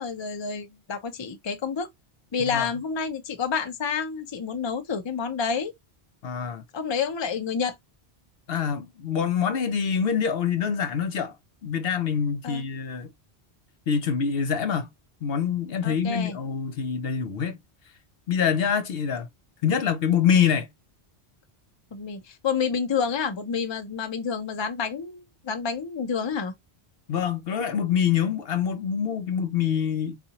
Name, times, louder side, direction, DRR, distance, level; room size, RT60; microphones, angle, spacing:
voice 1, 0.0-1.9 2.3-5.7 6.7-7.7 12.4-12.6 15.8-16.4 21.9-26.5, left 6 dB, 30° left, 0.6 m, -29 dB
voice 2, 6.2-6.6 8.5-11.3 11.6-13.1 13.9-14.9 15.2-17.6 18.3-19.3 19.6-20.7 27.1-30.2, left 7 dB, 65° left, 0.8 m, -25 dB
4.1 x 2.3 x 2.8 m
omnidirectional pair, 1.1 m